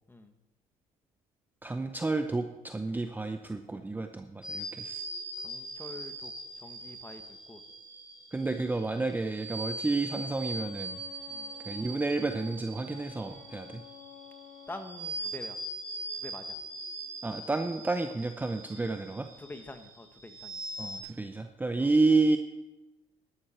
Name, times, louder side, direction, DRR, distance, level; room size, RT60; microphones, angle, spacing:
voice 1, 1.6-5.0 8.3-11.0 11.7-13.8 17.2-19.3 20.8-22.4, right 3 dB, 10° right, 7 dB, 0.7 m, -30 dB
sound 1, 4.4-21.0, right 1 dB, 35° right, 4.8 m, -41 dB
voice 2, 5.4-7.6 11.3-11.5 14.7-15.6 16.1-16.6 19.4-20.6 21.8-21.9, left 2 dB, 15° left, 7 dB, 1.4 m, -46 dB
Wind instrument woodwind instrument, 10.3-14.9, left 7 dB, 80° left, 2.1 m, -51 dB
12.5 x 11.5 x 4.4 m, 1.0 s
cardioid pair, 100°, 14 cm